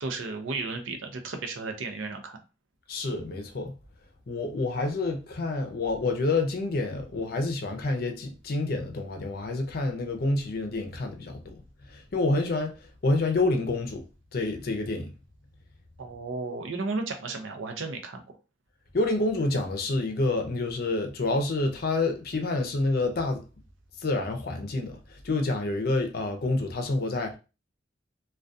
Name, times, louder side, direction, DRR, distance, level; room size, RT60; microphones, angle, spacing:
voice 1, 0.0-2.4 16.0-18.2, right 3 dB, 85° right, 0.5 m, -34 dB
voice 2, 2.9-3.8 4.3-11.6 11.9-12.8 13.0-14.0 14.3-15.1 18.9-23.4 24.0-27.4, left 2 dB, 50° left, 0.5 m, -28 dB
2.3 x 2.2 x 2.5 m
head